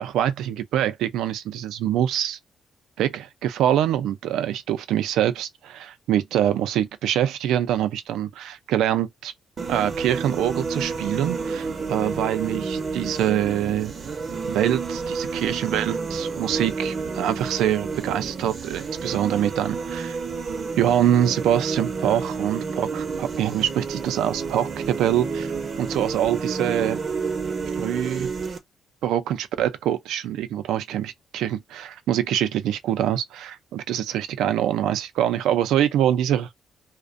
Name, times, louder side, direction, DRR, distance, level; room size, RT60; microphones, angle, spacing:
voice 1, 0.0-2.4 3.0-9.3 9.7-13.9 14.5-20.2 20.8-25.5 25.8-27.0 27.8-28.3 29.0-36.5, right 11 dB, 85° right, 0.3 m, -24 dB
sound 1, 9.6-28.6, right 4 dB, 45° right, 0.6 m, -30 dB
2.4 x 2.0 x 2.4 m
cardioid pair, 90°, 0 cm